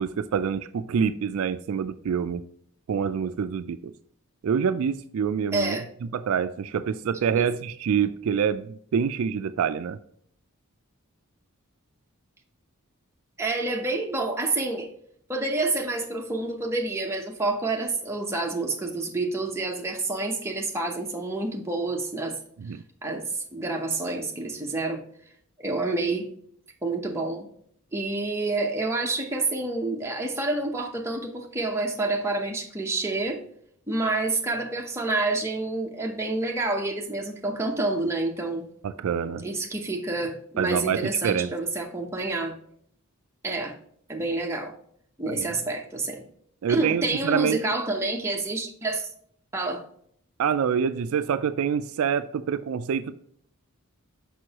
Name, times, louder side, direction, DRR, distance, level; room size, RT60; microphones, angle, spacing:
voice 1, 0.0-2.4 2.9-3.9 4.4-10.0 22.6-22.8 38.8-39.4 40.6-41.5 45.4-45.5 46.6-47.6 50.4-53.1, right 7 dB, 70° right, 0.3 m, -26 dB
voice 2, 5.5-5.8 7.3-7.4 13.4-14.9 15.3-22.4 23.0-25.0 25.6-26.3 26.8-27.5 27.9-33.4 33.9-38.6 39.4-42.5 43.4-43.7 44.1-44.7 45.2-46.2 46.7-49.1 49.5-49.8, right 2 dB, 10° right, 0.8 m, -28 dB
6.2 x 5.4 x 2.9 m
head